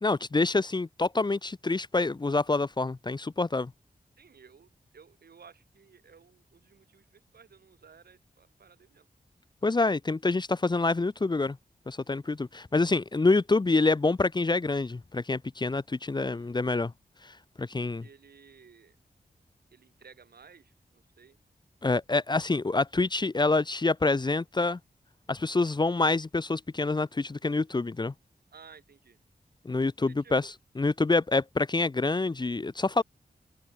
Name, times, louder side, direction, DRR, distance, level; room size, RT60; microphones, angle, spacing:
voice 1, 0.0-3.7 9.6-11.6 11.9-16.9 17.2-18.0 21.8-24.8 25.3-28.1 29.6-30.4 30.8-33.0, left 3 dB, 30° left, 0.9 m, -27 dB
voice 2, 4.2-9.1 16.2-16.6 17.8-19.0 19.7-21.4 28.5-29.2 30.1-30.5, right 6 dB, 80° right, 6.4 m, -56 dB
wide cardioid pair, 115°, 16 cm